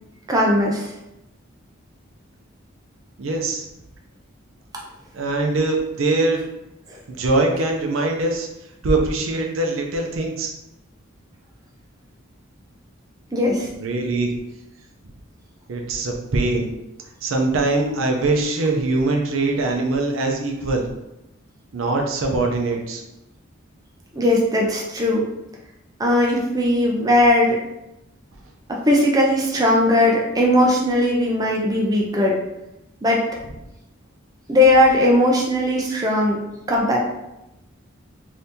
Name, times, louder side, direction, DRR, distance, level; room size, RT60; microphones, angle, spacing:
voice 1, 0.3-0.9 6.9-7.0 13.3-13.7 24.1-25.3 26.0-27.6 28.7-32.4 33.0-33.2 34.5-36.4 36.7-37.0, left 1 dB, 20° right, -2 dB, 0.4 m, -18 dB
voice 2, 3.2-3.7 5.1-6.4 7.1-8.5 8.8-10.5 13.8-14.3 15.7-16.7 17.2-20.9 21.7-23.0, right 2 dB, 75° right, 2 dB, 0.5 m, -22 dB
2.7 x 2.7 x 3.4 m, 0.91 s
head